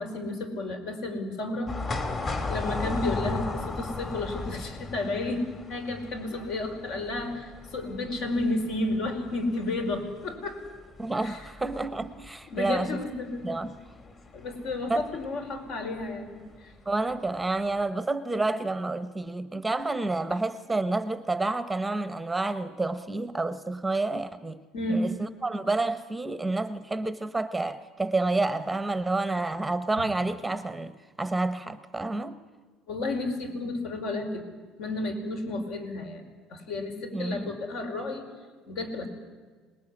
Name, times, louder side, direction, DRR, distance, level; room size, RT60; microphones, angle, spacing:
voice 1, 0.0-1.7 2.5-5.4 5.7-10.6 11.2-11.4 12.5-13.6 14.3-16.7 24.7-25.1 32.9-34.5 34.8-36.2 36.5-38.2 38.7-39.1, left 2 dB, 65° left, 5.0 m, -32 dB
sound 1, 1.7-15.7 16.0-16.1 17.1-17.4 17.8-17.9, left 3 dB, 30° left, 2.8 m, -36 dB
voice 2, 11.0-13.0 13.4-13.7 14.9-15.1 16.9-24.6 24.9-32.4 37.1-37.6, right 2 dB, 5° right, 0.9 m, -29 dB
26.5 x 19.5 x 9.8 m
cardioid pair, 135°, 0 cm